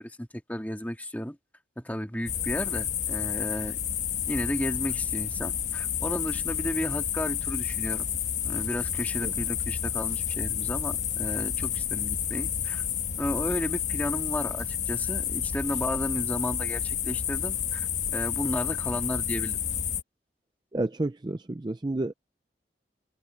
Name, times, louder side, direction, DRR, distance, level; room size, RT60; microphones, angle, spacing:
voice 1, 0.0-1.4 1.8-3.8 4.3-8.1 8.4-12.8 13.2-19.6, equal, 10° left, 2.0 m, -33 dB
sound 1, 2.3-20.0, left 9 dB, 45° left, 1.3 m, -30 dB
voice 2, 20.7-22.1, right 2 dB, 25° right, 0.5 m, -30 dB
head